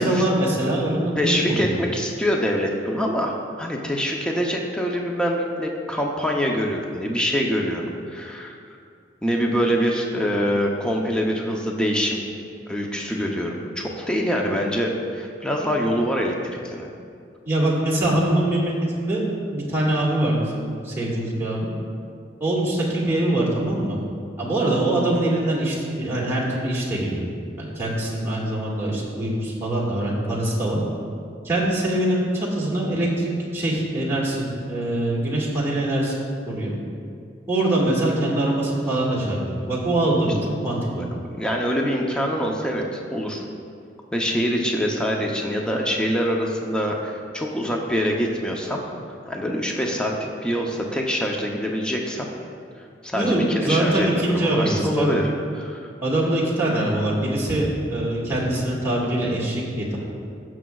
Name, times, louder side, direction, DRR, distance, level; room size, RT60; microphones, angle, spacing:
voice 1, 0.0-1.7 17.5-18.7 19.0-19.2 19.5-21.7 22.4-24.0 24.4-27.3 27.6-30.8 31.4-36.1 36.5-36.7 37.5-40.3 40.6-41.0 53.1-55.2 56.0-60.0, right 1 dB, 15° right, -6 dB, 1.9 m, -23 dB
voice 2, 1.2-8.6 9.2-12.2 12.7-16.9 41.4-43.4 44.1-48.8 49.3-50.1 50.4-52.3 53.0-55.3 55.5-55.8, equal, 5° left, 0 dB, 0.7 m, -24 dB
17.0 x 6.2 x 2.3 m, 2.3 s
head